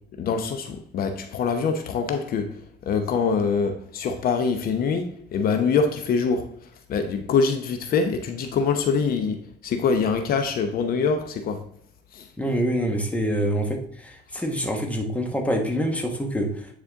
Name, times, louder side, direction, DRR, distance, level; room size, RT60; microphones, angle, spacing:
voice 1, 0.2-2.6 2.9-6.5 6.9-11.6 12.1-12.3, left 5 dB, 60° left, 6 dB, 0.9 m, -24 dB
voice 2, 12.4-16.7, equal, 10° left, 2 dB, 1.5 m, -26 dB
9.7 x 4.3 x 3.7 m, 0.64 s
cardioid pair, 110°, 17 cm